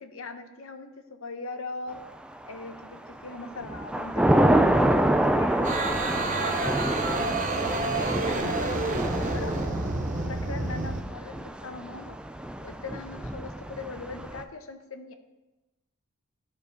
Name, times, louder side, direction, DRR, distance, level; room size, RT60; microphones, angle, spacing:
voice 1, 0.0-2.0 2.5-9.6 10.3-12.2 12.6-15.2, left 3 dB, 70° left, 7 dB, 0.8 m, -40 dB
Thunder / Rain, 2.3-2.9 3.3-14.4, right 1 dB, 5° right, 0.3 m, -27 dB
sound 1, 5.6-11.0, right 2 dB, 35° right, 0.8 m, -29 dB
12.0 x 4.8 x 5.1 m, 1.1 s
head